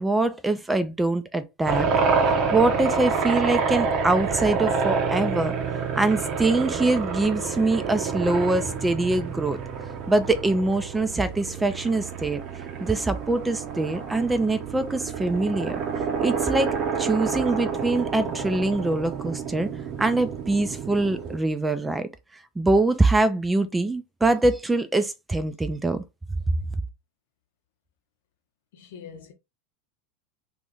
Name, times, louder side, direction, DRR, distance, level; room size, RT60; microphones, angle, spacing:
voice 1, 0.0-1.9 2.5-5.5 6.0-9.6 10.1-12.4 12.8-15.8 16.2-19.7 20.0-26.0 26.5-26.6, right 2 dB, 10° right, 0.4 m, -24 dB
sound 1, 1.7-21.4, right 5 dB, 45° right, 0.7 m, -28 dB
voice 2, 28.7-29.3, left 7 dB, 65° left, 0.8 m, -43 dB
2.6 x 2.6 x 3.4 m
hypercardioid pair, 85°, 0 cm